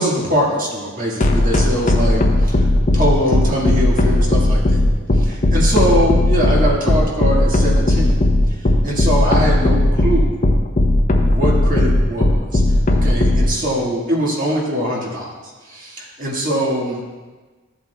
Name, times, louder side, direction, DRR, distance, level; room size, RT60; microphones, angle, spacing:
voice 1, 0.0-2.7 2.9-4.8 5.3-8.2 8.8-10.4 11.2-12.6 12.9-15.3 15.7-17.0, equal, 40° right, -3 dB, 1.7 m, -22 dB
sound 1, 1.2-13.5, left 1 dB, 35° left, 0.7 m, -15 dB
13.5 x 7.9 x 2.3 m, 1.3 s
head